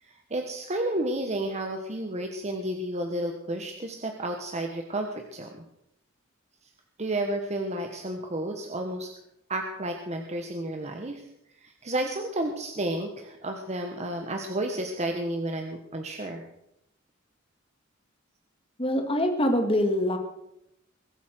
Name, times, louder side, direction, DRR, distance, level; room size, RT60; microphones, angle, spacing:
voice 1, 0.0-5.6 7.0-9.1 9.5-11.3 11.6-16.4, right 1 dB, 35° right, 4 dB, 1.2 m, -31 dB
voice 2, 18.8-20.2, left 1 dB, 25° left, 4 dB, 2.2 m, -24 dB
22.0 x 8.3 x 6.2 m, 0.82 s
head